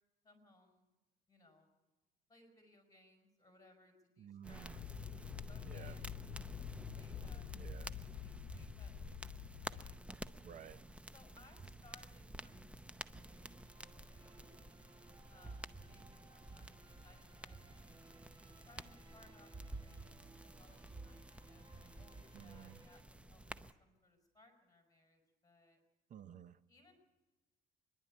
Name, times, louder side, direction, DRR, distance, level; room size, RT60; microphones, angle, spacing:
voice 1, 0.2-0.9 1.3-1.7 2.3-4.8 5.5-6.3 6.9-7.5 7.9-10.0 11.1-13.7 14.0-14.7 15.3-17.8 18.6-25.8 26.7-26.9, left 2 dB, 20° left, 5.0 m, -66 dB
voice 2, 4.2-4.8 5.7-6.0 7.6-7.9 10.4-10.8 22.3-22.8 26.1-26.6, right 9 dB, 50° right, 0.8 m, -53 dB
sound 1, 4.4-23.7, right 1 dB, 5° right, 0.7 m, -51 dB
sound 2, 4.7-9.9, left 10 dB, 65° left, 0.9 m, -47 dB
sound 3, 12.6-23.0, right 3 dB, 25° right, 1.3 m, -65 dB
26.0 x 11.0 x 9.4 m
cardioid pair, 110°, 17 cm